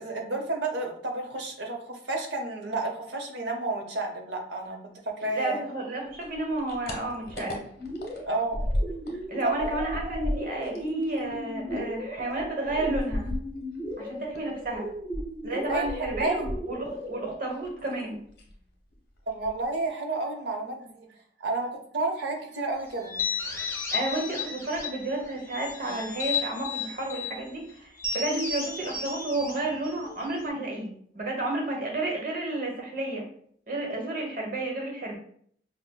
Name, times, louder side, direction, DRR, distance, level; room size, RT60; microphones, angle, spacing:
voice 1, 0.0-4.8 5.0-5.6 8.3-8.6 9.4-9.7 15.4-15.8 16.2-16.5 19.3-21.0 21.4-23.1, right 2 dB, 75° right, 2 dB, 0.7 m, -31 dB
voice 2, 5.3-7.6 9.3-13.2 14.0-14.9 15.4-18.2 23.9-33.2 33.7-35.2, right 2 dB, 50° right, -1 dB, 0.9 m, -31 dB
sound 1, 6.2-9.2 9.5-14.0 14.3-17.1 17.3-18.0 18.3-18.6 18.9-19.0 19.3-19.9, equal, 60° left, 1.0 m, -35 dB
sound 2, 7.8-17.3, equal, 10° right, 1.0 m, -37 dB
sound 3, 23.0-25.1 25.5-27.4 28.0-30.5, left 5 dB, 15° left, 0.6 m, -33 dB
5.8 x 2.1 x 2.2 m, 0.63 s
head